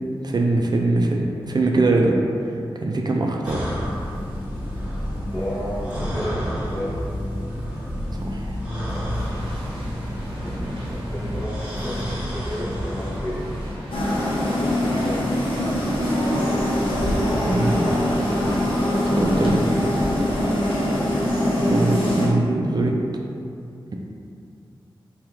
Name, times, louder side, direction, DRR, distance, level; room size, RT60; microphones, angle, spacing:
voice 1, 0.2-2.2 2.8-3.7 8.1-8.6 17.5-17.9 19.1-20.0 21.5-23.0, right 2 dB, 50° right, 1 dB, 0.4 m, -22 dB
sound 1, 3.4-13.7, equal, 15° right, 1.2 m, -29 dB
voice 2, 5.3-7.0 10.3-13.5 14.4-15.3 19.1-19.6 19.9-20.1, equal, 30° left, -11 dB, 0.7 m, -32 dB
sound 2, 9.1-19.5, equal, 80° right, 0.7 m, -38 dB
sound 3, 13.9-22.3, left 1 dB, 90° left, 0.6 m, -22 dB
3.0 x 2.3 x 3.4 m, 2.5 s
cardioid pair, 45°, 9 cm